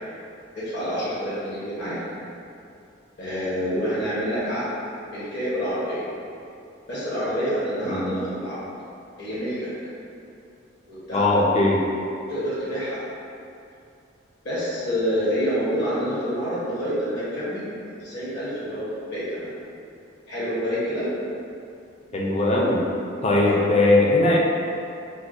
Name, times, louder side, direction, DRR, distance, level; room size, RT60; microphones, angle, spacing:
voice 1, 0.5-2.0 3.2-4.7 5.1-6.0 6.9-8.6 9.2-9.7 10.9-11.2 12.2-13.0 14.4-17.7 18.0-19.5 20.3-21.1 23.4-23.7, equal, 60° left, -9 dB, 0.9 m, -27 dB
voice 2, 11.1-11.8 22.1-22.8 23.2-24.4, left 2 dB, 35° left, -2 dB, 0.4 m, -19 dB
4.4 x 2.1 x 2.5 m, 2.6 s
head